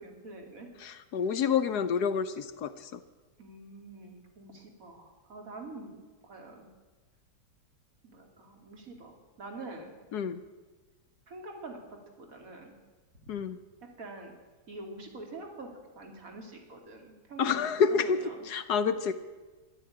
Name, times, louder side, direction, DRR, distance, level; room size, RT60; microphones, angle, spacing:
voice 1, 0.0-0.7 3.4-6.7 8.0-9.9 11.3-11.8 12.2-12.7 14.0-14.3 14.7-15.7 15.9-17.7 17.9-18.4, right 2 dB, 50° right, 2 dB, 2.9 m, -45 dB
voice 2, 0.8-3.0 10.1-10.4 13.3-13.6 17.4-18.2 18.4-19.1, left 6 dB, 70° left, 10 dB, 1.2 m, -28 dB
13.5 x 11.5 x 8.7 m, 1.3 s
omnidirectional pair, 1.9 m